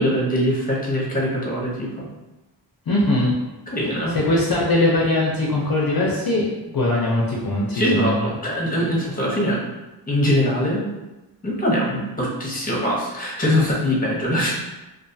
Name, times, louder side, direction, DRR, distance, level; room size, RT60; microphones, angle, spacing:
voice 1, 0.0-2.1 3.7-4.2 7.7-9.6 10.1-10.9 11.4-14.5, equal, 20° left, -4 dB, 0.8 m, -22 dB
voice 2, 2.9-3.3 4.1-8.3, left 1 dB, 55° left, -4 dB, 0.6 m, -21 dB
2.4 x 2.3 x 2.6 m, 1.0 s
wide cardioid pair, 70°, 44 cm